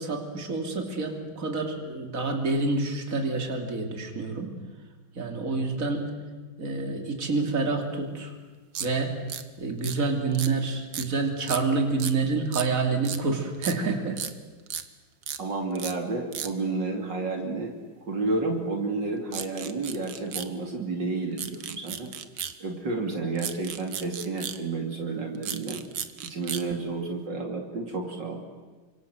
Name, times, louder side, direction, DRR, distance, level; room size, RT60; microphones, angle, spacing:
voice 1, 0.0-4.5 5.2-6.1 6.6-8.3 8.8-9.1 9.6-14.2, right 3 dB, 40° right, 3 dB, 3.4 m, -28 dB
sound 1, 8.7-8.9 9.3-9.4 9.8-10.0 10.3-10.5 10.9-11.1 11.4-11.6 12.0-12.2 12.5-12.7 13.1-13.2 13.6-13.8 14.2-14.3 14.7-14.8 15.2-15.4 15.8-15.9 16.3-16.5 19.3-20.5 21.4-22.6 23.4-24.6 25.3-26.7, right 9 dB, 85° right, 2.1 m, -34 dB
voice 2, 15.4-17.7 18.1-22.1 22.6-25.8 26.2-28.4, right 3 dB, 65° right, 3 dB, 3.3 m, -31 dB
29.0 x 25.5 x 7.9 m, 1.3 s
omnidirectional pair, 2.1 m